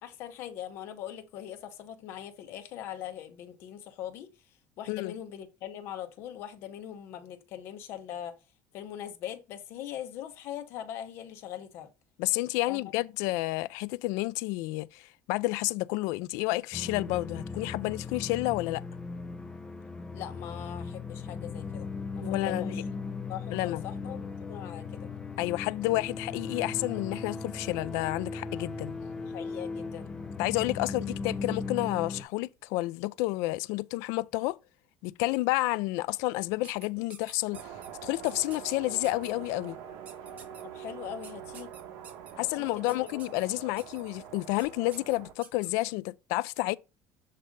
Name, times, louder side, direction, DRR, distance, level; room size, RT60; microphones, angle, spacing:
voice 1, 0.0-4.3 4.8-8.4 8.7-11.9 12.7-12.9 20.1-21.9 22.1-22.8 23.3-25.1 29.3-30.1 40.6-41.7 42.4-43.2, left 10 dB, 50° left, 1.1 m, -41 dB
voice 2, 12.2-18.8 22.2-22.7 23.5-23.8 25.4-28.9 30.4-34.6 35.0-37.6 38.0-39.8 42.4-46.8, left 19 dB, 85° left, 0.4 m, -30 dB
sound 1, 16.7-32.2, left 4 dB, 15° left, 0.7 m, -38 dB
sound 2, 36.6-37.9 38.2-38.7 39.0-39.3 40.1-40.6 41.2-42.3 42.9-43.5 43.8-44.0 44.6-44.7 44.9-45.7, right 7 dB, 30° right, 1.5 m, -49 dB
sound 3, 37.5-45.3, right 9 dB, 75° right, 1.3 m, -45 dB
7.6 x 3.3 x 5.2 m
cardioid pair, 175°, 5 cm